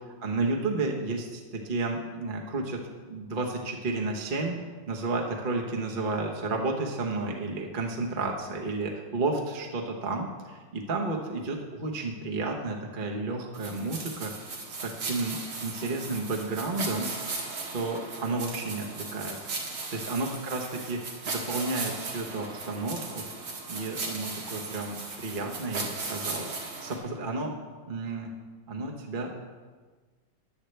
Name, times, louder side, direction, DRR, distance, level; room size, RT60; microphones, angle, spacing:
voice 1, 0.2-2.8 3.1-4.5 4.9-14.3 14.8-17.1 17.7-19.4 19.9-23.2 23.7-26.5 26.8-27.5 27.9-28.3 28.7-29.3, right 3 dB, 30° right, 0 dB, 1.1 m, -32 dB
sound 1, 13.5-27.0, right 3 dB, 85° right, 2.6 m, -37 dB
14.5 x 10.5 x 3.3 m, 1.4 s
omnidirectional pair, 2.1 m